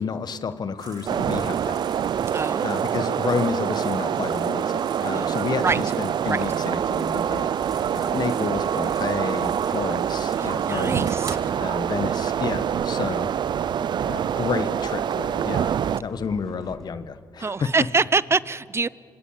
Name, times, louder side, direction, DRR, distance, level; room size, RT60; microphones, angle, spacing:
voice 1, 0.0-1.9 2.6-7.7 7.9-11.1 11.6-13.3 14.0-17.7, left 5 dB, 55° left, 11 dB, 1.4 m, -30 dB
sound 1, 0.8-11.4, right 4 dB, 50° right, 3.5 m, -42 dB
sound 2, 1.1-16.0, right 9 dB, 65° right, 0.6 m, -25 dB
voice 2, 2.3-2.8 5.1-5.8 6.3-6.4 10.4-11.4 17.4-18.9, right 4 dB, 30° right, 19 dB, 0.7 m, -25 dB
sound 3, 6.3-16.9, equal, 5° left, 3.4 m, -45 dB
26.5 x 23.5 x 8.9 m, 2.3 s
supercardioid pair, 60°, 8 cm